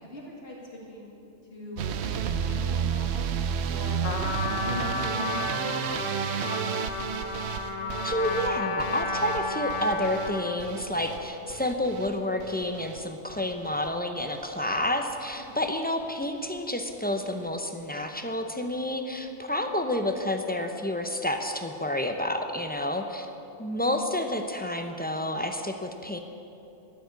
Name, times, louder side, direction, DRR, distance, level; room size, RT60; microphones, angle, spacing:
voice 1, 0.0-0.6 0.8-1.2 1.5-4.0 4.6-5.4 5.8-6.3 15.3-15.6, left 2 dB, 50° left, -2 dB, 2.4 m, -42 dB
sound 1, 1.8-13.9 14.2-14.8 15.1-15.7 16.0-16.2 16.6-16.7 16.9-17.0, right 7 dB, 65° right, 0.8 m, -32 dB
Trumpet, 4.0-10.6, left 3 dB, 85° left, 1.5 m, -32 dB
voice 2, 8.0-23.3 23.6-26.2, left 1 dB, 10° left, 5 dB, 0.5 m, -29 dB
12.5 x 8.4 x 8.0 m, 2.8 s
omnidirectional pair, 1.3 m